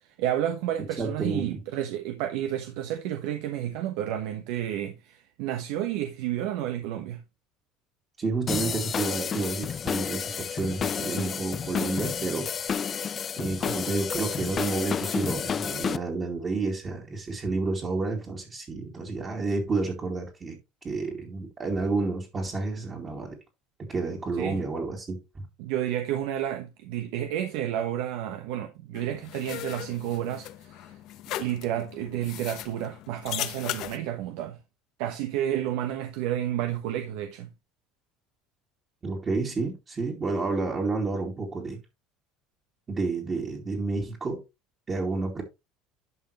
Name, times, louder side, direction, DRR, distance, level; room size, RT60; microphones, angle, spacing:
voice 1, 0.0-7.2 24.4-24.6 25.6-31.0 31.4-34.6 35.0-37.5, right 11 dB, 75° right, 1.2 m, -31 dB
voice 2, 1.0-1.6 8.2-12.5 13.4-20.6 20.8-23.4 23.8-25.5 39.0-41.8 42.9-44.4 44.9-45.4, right 3 dB, 30° right, 2.5 m, -30 dB
sound 1, 8.5-16.0, left 7 dB, 35° left, 0.5 m, -30 dB
sound 2, 28.9-34.0, left 13 dB, 60° left, 0.9 m, -38 dB
11.0 x 5.8 x 3.1 m
supercardioid pair, 105°, 0 cm